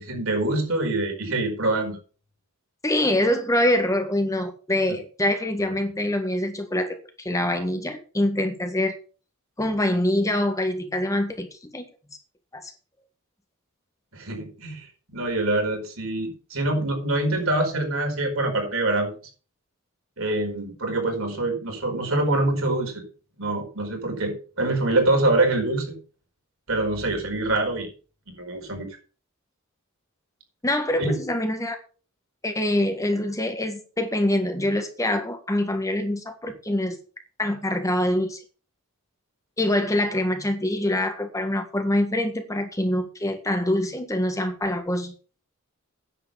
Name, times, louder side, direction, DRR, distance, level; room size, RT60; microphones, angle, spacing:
voice 1, 0.0-2.0 4.9-5.0 14.1-19.1 20.2-23.0 23.4-26.0 26.7-27.9 28.3-28.9 31.0-31.1, right 2 dB, 70° right, 2 dB, 4.9 m, -25 dB
voice 2, 2.8-8.9 9.6-11.9 12.5-12.7 30.6-31.8 32.4-37.0 37.4-38.4 39.6-45.1, left 1 dB, 15° left, 7 dB, 1.6 m, -25 dB
9.9 x 8.0 x 6.9 m, 0.37 s
head